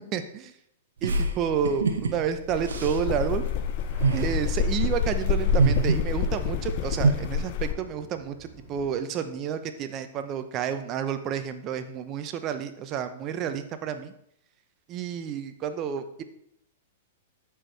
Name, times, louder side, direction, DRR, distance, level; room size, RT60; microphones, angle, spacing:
voice 1, 0.1-0.5 1.0-3.4 4.1-14.1 14.9-16.2, right 8 dB, 35° right, 9 dB, 0.9 m, -30 dB
sound 1, 1.0-7.1, right 4 dB, 75° right, 1.0 m, -27 dB
sound 2, 2.5-7.7, left 7 dB, 50° left, 0.7 m, -27 dB
sound 3, 3.9-9.0, equal, 5° left, 3.9 m, -45 dB
13.5 x 4.8 x 3.4 m, 0.74 s
hypercardioid pair, 110°, 0 cm